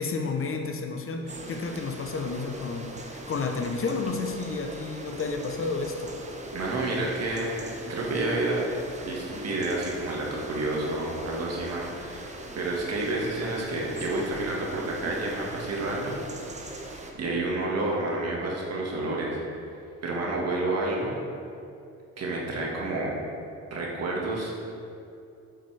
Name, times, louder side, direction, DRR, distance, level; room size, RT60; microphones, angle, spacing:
voice 1, 0.0-6.1, left 4 dB, 45° left, 4 dB, 0.8 m, -31 dB
sound 1, 1.3-17.1, right 2 dB, 25° right, 0.9 m, -41 dB
voice 2, 6.5-7.5 7.9-8.7 9.0-16.2 16.7-19.4 20.0-21.2 22.2-23.2 23.7-24.5, right 2 dB, 55° right, -3 dB, 1.7 m, -29 dB
7.5 x 6.8 x 3.3 m, 2.6 s
cardioid pair, 90°, 30 cm